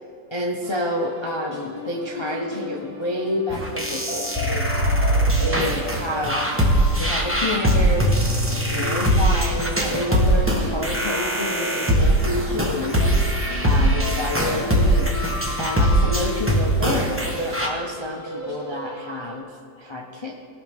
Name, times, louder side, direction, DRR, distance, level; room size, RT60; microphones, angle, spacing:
voice 1, 0.3-4.8 5.4-13.0 13.6-15.1 15.6-19.5 19.8-20.3, left 1 dB, 50° left, -1 dB, 0.3 m, -29 dB
sound 1, 0.6-19.4, left 2 dB, 15° left, 2.1 m, -35 dB
sound 2, 3.5-17.7, right 1 dB, 10° right, 0.8 m, -21 dB
18.5 x 6.3 x 3.5 m, 2.6 s
omnidirectional pair, 2.0 m